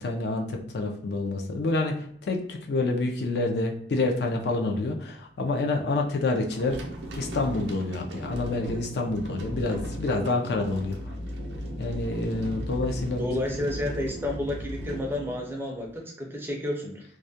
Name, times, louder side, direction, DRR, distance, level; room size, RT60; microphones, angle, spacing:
voice 1, 0.0-6.8 7.2-11.0 11.8-13.6, left 2 dB, 65° left, 2 dB, 0.4 m, -28 dB
sound 1, 6.5-16.0, equal, 80° right, 0.5 m, -37 dB
voice 2, 13.2-17.0, left 1 dB, 10° right, 0 dB, 0.4 m, -31 dB
2.3 x 2.1 x 2.6 m, 0.62 s
head